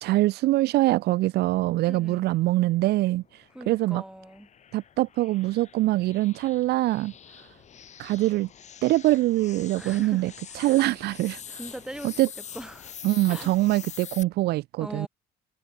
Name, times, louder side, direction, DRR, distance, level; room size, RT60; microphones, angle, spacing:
voice 1, 0.0-3.2 3.7-4.0 4.7-7.1 8.0-8.5 8.8-11.6 12.0-12.3 13.0-15.1, right 17 dB, 75° right, 0.6 m, -24 dB
voice 2, 1.9-2.3 3.5-4.5 9.8-10.8 11.5-12.2 12.5-12.9 13.3-13.5 14.8-15.1, right 1 dB, 5° right, 4.0 m, -40 dB
sound 1, 2.7-14.2, left 8 dB, 45° left, 1.6 m, -45 dB
cardioid pair, 110°, 17 cm